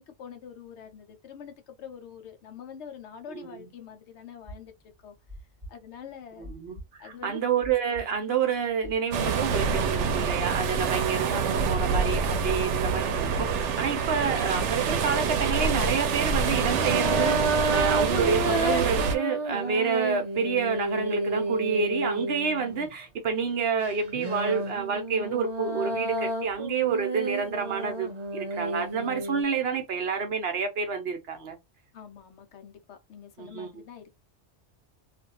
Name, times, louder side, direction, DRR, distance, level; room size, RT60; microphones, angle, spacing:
voice 1, 0.0-4.7 5.0-5.1 5.7-6.5 7.0-7.4 31.9-34.2, left 8 dB, 75° left, 0.9 m, -45 dB
voice 2, 3.3-3.7 6.4-31.6 33.4-33.7, right 6 dB, 65° right, 0.9 m, -29 dB
sound 1, 4.4-12.5, equal, 20° right, 1.0 m, -45 dB
sound 2, 9.1-19.1, right 5 dB, 90° right, 0.9 m, -26 dB
sound 3, 16.3-22.9 23.8-29.4, right 2 dB, 45° right, 0.6 m, -30 dB
2.5 x 2.4 x 2.7 m
omnidirectional pair, 1.2 m